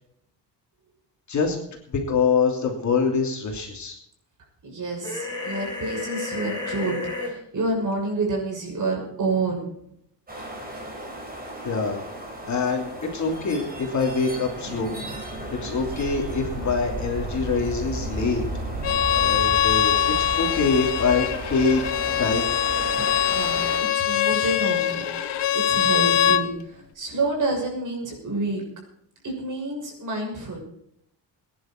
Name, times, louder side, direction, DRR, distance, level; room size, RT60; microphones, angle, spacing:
voice 1, 1.9-4.0 11.6-12.0 12.5-14.9 15.5-18.4 19.1-21.8 22.2-22.4, left 4 dB, 40° left, 1 dB, 3.0 m, -24 dB
voice 2, 4.6-9.7 23.3-28.6 29.2-30.6, right 2 dB, 45° right, 0 dB, 6.5 m, -28 dB
sound 1, 5.0-7.3, left 3 dB, 10° left, 7.8 m, -31 dB
sound 2, 10.3-23.8, right 1 dB, 20° right, 5.0 m, -34 dB
Bowed string instrument, 18.8-26.4, left 10 dB, 70° left, 1.2 m, -23 dB
22.0 x 10.5 x 4.5 m, 0.74 s
cardioid pair, 165°, 44 cm